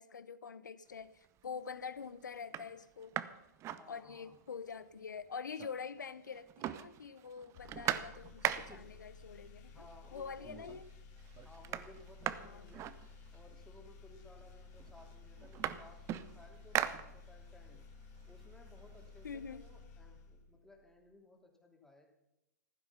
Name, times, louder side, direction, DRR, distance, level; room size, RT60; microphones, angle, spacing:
voice 1, 0.0-3.1 3.9-9.9 10.1-10.8 12.3-12.7 19.2-19.6, left 6 dB, 80° left, 16 dB, 0.8 m, -45 dB
sound 1, 1.0-1.5 2.0-2.1 2.4-4.5 4.8-4.9 5.1-6.0 6.3-9.0 9.9-10.0 10.4-10.9 11.2-13.6 14.4-14.5 14.8-17.6 18.0-19.7, right 12 dB, 30° right, 0.7 m, -40 dB
voice 2, 3.7-4.4 8.7-9.0 9.7-10.8 11.4-12.9 13.3-17.8 18.3-22.1, left 1 dB, 5° left, 1 dB, 2.9 m, -59 dB
sound 2, 7.5-20.9, left 4 dB, 45° left, 2.3 m, -55 dB
15.0 x 12.0 x 5.7 m, 0.88 s
figure-of-eight pair, 110°, 10 cm